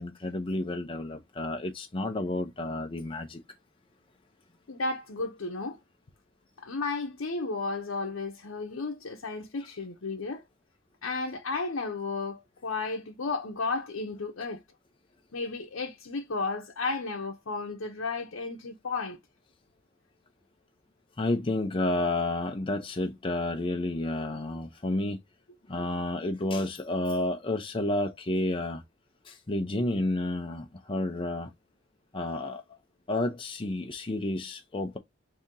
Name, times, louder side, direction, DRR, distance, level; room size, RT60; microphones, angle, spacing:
voice 1, 0.0-3.4 21.2-25.2 25.7-28.8 29.5-31.5 32.1-32.6 33.1-35.0, left 2 dB, 25° left, 0.6 m, -30 dB
voice 2, 4.7-5.8 6.6-10.4 11.0-14.6 15.3-19.2, left 3 dB, 75° left, 0.8 m, -33 dB
4.2 x 2.8 x 3.7 m
head